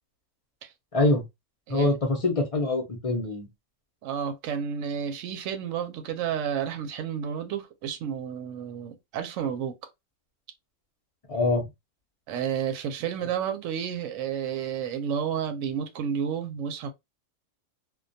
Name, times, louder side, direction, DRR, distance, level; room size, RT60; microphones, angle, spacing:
voice 1, 0.9-1.2 1.7-3.5 11.3-11.7, left 2 dB, 40° left, 0.5 m, -24 dB
voice 2, 4.0-9.7 12.3-16.9, right 8 dB, 75° right, 0.9 m, -31 dB
2.2 x 2.2 x 2.6 m
omnidirectional pair, 1.4 m